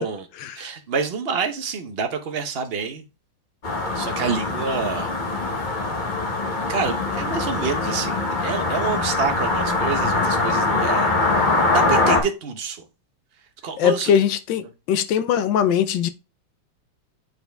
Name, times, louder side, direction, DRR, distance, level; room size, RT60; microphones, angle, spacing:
voice 1, 0.6-3.0 3.9-5.1 6.7-12.9 13.6-14.1, right 5 dB, 45° right, 0.9 m, -28 dB
sound 1, 3.6-12.2, left 3 dB, 35° left, 0.9 m, -23 dB
voice 2, 13.8-16.1, left 9 dB, 80° left, 1.4 m, -21 dB
8.0 x 4.1 x 3.4 m
omnidirectional pair, 2.0 m